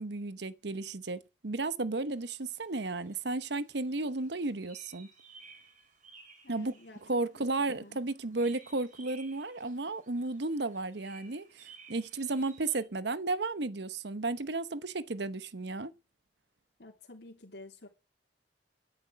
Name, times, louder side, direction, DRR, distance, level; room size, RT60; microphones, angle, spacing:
voice 1, 0.0-5.1 6.5-6.7 7.1-15.9, right 2 dB, 65° right, 1.0 m, -34 dB
sound 1, 2.1-12.8, right 4 dB, 45° right, 4.5 m, -58 dB
voice 2, 6.4-8.0 16.8-17.9, left 2 dB, 65° left, 3.1 m, -51 dB
12.5 x 10.5 x 6.3 m
head